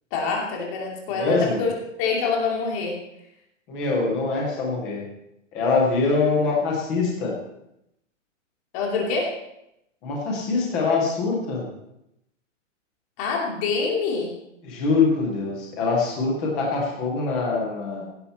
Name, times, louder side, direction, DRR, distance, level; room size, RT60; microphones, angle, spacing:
voice 1, 0.1-1.7 2.0-3.0 8.7-9.3 13.2-14.3, left 4 dB, 25° left, -1 dB, 2.6 m, -25 dB
voice 2, 1.1-1.6 3.7-5.0 5.5-7.3 10.0-11.6 14.6-18.0, left 4 dB, 5° left, -2 dB, 0.4 m, -24 dB
16.0 x 11.0 x 4.2 m, 0.83 s
hypercardioid pair, 165°, 38 cm